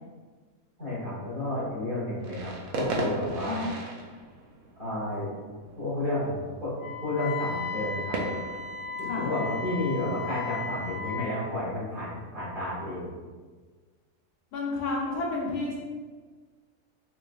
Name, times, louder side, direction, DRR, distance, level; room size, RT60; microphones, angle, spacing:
voice 1, 0.8-3.7 4.8-5.3 5.8-8.2 9.0-13.1, left 1 dB, 35° right, -9 dB, 1.5 m, -31 dB
sound 1, 2.2-9.8, right 1 dB, 65° right, 0.9 m, -37 dB
Wind instrument woodwind instrument, 6.8-11.3, left 4 dB, 70° left, 0.6 m, -35 dB
voice 2, 14.5-15.8, left 3 dB, 85° left, -2 dB, 1.1 m, -31 dB
4.2 x 3.0 x 2.3 m, 1.5 s
omnidirectional pair, 1.5 m